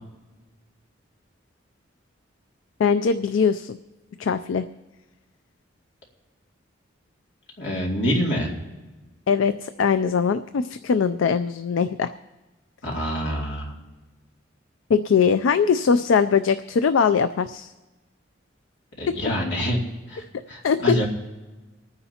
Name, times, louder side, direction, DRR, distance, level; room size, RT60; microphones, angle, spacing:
voice 1, 2.8-3.8 4.2-4.7 9.3-12.1 14.9-17.7 20.6-21.0, left 6 dB, 80° left, 11 dB, 0.4 m, -21 dB
voice 2, 7.6-8.5 12.8-13.7 19.0-19.8 20.1-21.1, equal, 65° left, -2 dB, 2.6 m, -26 dB
25.5 x 9.7 x 2.9 m, 1.2 s
head